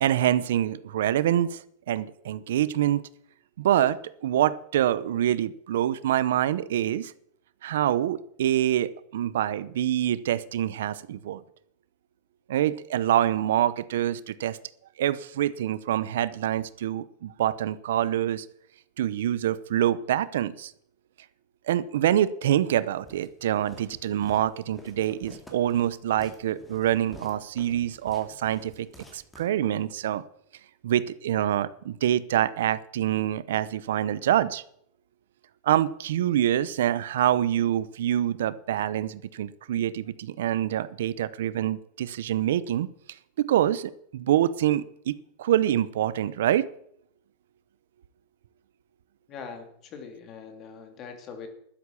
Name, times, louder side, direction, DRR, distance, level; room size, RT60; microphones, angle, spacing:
voice 1, 0.0-3.0 3.6-7.1 7.6-11.4 12.5-14.6 15.0-18.4 19.0-20.7 21.7-28.9 29.1-30.2 30.8-34.6 35.6-42.9 43.4-46.6, right 11 dB, 85° right, 17 dB, 0.7 m, -26 dB
Walk footsteps, 23.1-30.0, equal, 5° left, 2.5 m, -50 dB
voice 2, 49.3-51.5, left 6 dB, 35° left, 6 dB, 2.6 m, -42 dB
12.0 x 9.8 x 7.2 m, 0.71 s
supercardioid pair, 150°, 0 cm